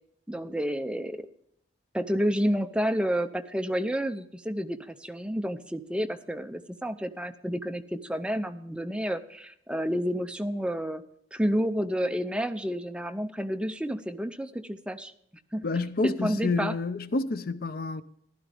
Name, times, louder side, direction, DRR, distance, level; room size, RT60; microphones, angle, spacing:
voice 1, 0.3-1.3 1.9-11.0 11.3-15.1 15.5-15.7 16.0-16.7, equal, 5° right, 0.5 m, -30 dB
voice 2, 15.6-18.0, left 3 dB, 55° left, 0.6 m, -29 dB
14.5 x 11.5 x 3.4 m
head